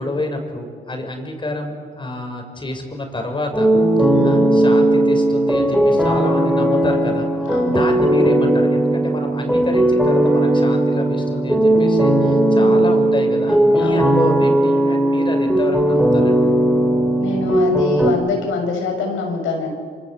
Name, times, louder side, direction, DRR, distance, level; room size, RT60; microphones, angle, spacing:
voice 1, 0.0-3.7 4.0-7.3 7.7-16.4, left 1 dB, 25° left, 3 dB, 6.6 m, -28 dB
sound 1, 3.5-18.1, right 1 dB, ahead, 4.4 m, -17 dB
voice 2, 4.1-4.5 7.5-7.8 12.5-12.9 13.8-14.1 17.2-19.7, left 4 dB, 85° left, 3 dB, 6.5 m, -25 dB
27.0 x 26.5 x 8.1 m, 2.1 s
cardioid pair, 90°, 20 cm